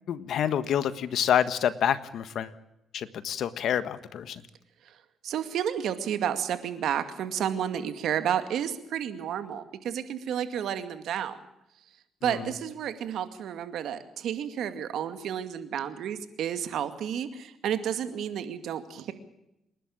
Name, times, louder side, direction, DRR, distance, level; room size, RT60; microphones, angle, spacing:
voice 1, 0.1-2.5 2.9-4.4 12.2-12.5, left 9 dB, 70° left, 13 dB, 1.5 m, -28 dB
voice 2, 5.2-11.4 12.2-19.1, right 9 dB, 75° right, 10 dB, 2.2 m, -31 dB
27.5 x 11.5 x 8.8 m, 0.85 s
cardioid pair, 90°, 0 cm